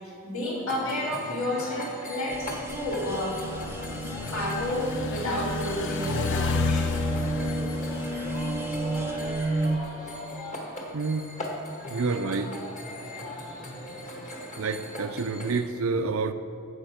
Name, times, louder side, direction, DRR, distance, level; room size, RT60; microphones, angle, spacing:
voice 1, 0.0-3.4 4.3-6.9 13.3-13.5, left 1 dB, 70° left, -5 dB, 3.0 m, -31 dB
sound 1, 0.7-15.6, left 1 dB, 35° left, 1.6 m, -39 dB
sound 2, 2.3-9.8, right 2 dB, 10° right, 0.5 m, -32 dB
sound 3, 3.1-9.3, left 5 dB, 55° left, 0.4 m, -32 dB
voice 2, 10.9-11.3 11.9-12.5 14.6-16.3, right 4 dB, 65° right, 10 dB, 0.5 m, -28 dB
14.5 x 5.4 x 5.7 m, 2.5 s
head